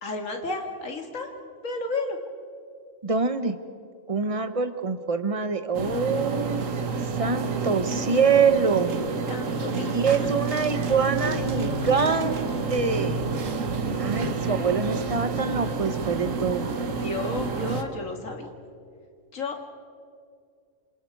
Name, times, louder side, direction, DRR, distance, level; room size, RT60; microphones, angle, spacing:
voice 1, 0.0-1.3 1.6-2.2 9.3-10.3 11.9-12.1 13.8-14.1 17.0-18.5 19.3-19.7, left 3 dB, 90° left, 3 dB, 2.5 m, -33 dB
voice 2, 3.0-3.6 4.1-6.8 7.2-9.0 9.9-12.4 12.7-13.3 14.0-16.7, right 5 dB, 30° right, 10 dB, 1.0 m, -25 dB
sound 1, 5.7-17.8, right 4 dB, 85° right, 1.7 m, -29 dB
27.5 x 27.0 x 4.7 m, 2.3 s
omnidirectional pair, 1.3 m